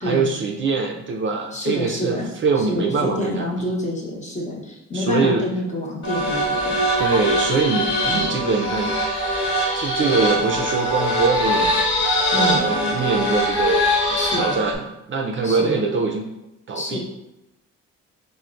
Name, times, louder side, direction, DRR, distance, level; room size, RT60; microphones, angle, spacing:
voice 1, 0.0-3.7 4.9-5.5 7.0-9.0 9.3-11.7 12.3-14.8 15.1-16.3 16.7-17.0, right 4 dB, 40° right, 1 dB, 0.4 m, -23 dB
voice 2, 1.5-2.3 2.6-6.8 8.1-8.3 12.3-12.6 14.2-14.6 15.4-15.8 16.7-17.0, left 1 dB, 25° left, -3 dB, 0.9 m, -27 dB
sound 1, 6.0-14.7, equal, 40° left, 1.2 m, -22 dB
4.1 x 2.1 x 2.5 m, 0.93 s
cardioid pair, 90°, 30 cm